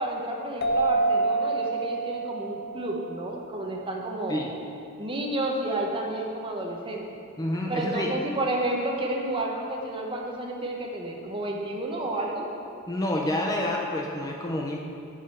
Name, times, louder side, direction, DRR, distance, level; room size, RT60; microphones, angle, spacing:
voice 1, 0.0-4.5 5.0-7.0 7.7-12.5, right 1 dB, 25° right, 0 dB, 0.9 m, -30 dB
sound 1, 0.6-3.9, right 3 dB, 50° left, 0.8 m, -28 dB
voice 2, 7.4-8.1 12.9-14.8, left 1 dB, 15° left, 0 dB, 0.5 m, -28 dB
7.3 x 4.9 x 7.1 m, 2.5 s
head